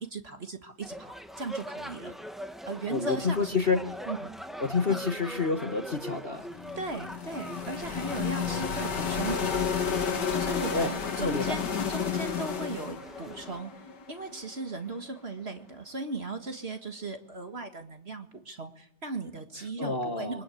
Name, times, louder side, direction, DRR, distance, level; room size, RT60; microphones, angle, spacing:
voice 1, 0.0-2.1 2.7-3.6 4.1-4.3 4.9-5.0 6.8-9.5 10.3-11.6 11.9-13.7 14.1-20.4, right 3 dB, 35° right, 6 dB, 1.8 m, -37 dB
sound 1, 0.8-13.6, equal, ahead, 1.1 m, -43 dB
voice 2, 2.9-3.9 4.6-6.5 10.7-11.6 19.8-20.4, left 4 dB, 35° left, 6 dB, 1.5 m, -29 dB
sound 2, 6.5-14.5, left 6 dB, 65° left, 2.5 m, -31 dB
29.0 x 23.5 x 8.5 m, 0.77 s
omnidirectional pair, 2.0 m